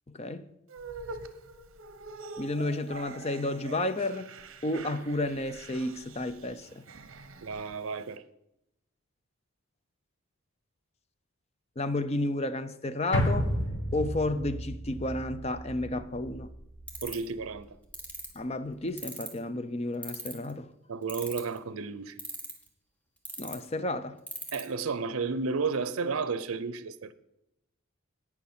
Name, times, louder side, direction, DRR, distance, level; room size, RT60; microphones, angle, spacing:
voice 1, 0.1-0.4 2.4-4.3 4.6-6.8 11.8-13.5 13.9-16.5 18.4-20.7 23.4-24.2, left 2 dB, 30° left, 0.5 m, -32 dB
sound 1, 0.7-8.1, right 3 dB, 70° right, 0.9 m, -45 dB
voice 2, 7.4-8.2 17.0-17.7 20.9-22.2 24.5-27.1, right 4 dB, 85° right, 0.6 m, -32 dB
sound 2, 13.1-17.6 17.9-18.0, equal, 60° left, 1.6 m, -33 dB
sound 3, 16.9-17.3 17.9-18.3 19.0-19.4 20.0-20.5 21.1-21.6 22.2-22.7 23.2-23.5 24.3-24.6, right 1 dB, 5° left, 1.2 m, -37 dB
17.5 x 5.9 x 4.4 m
head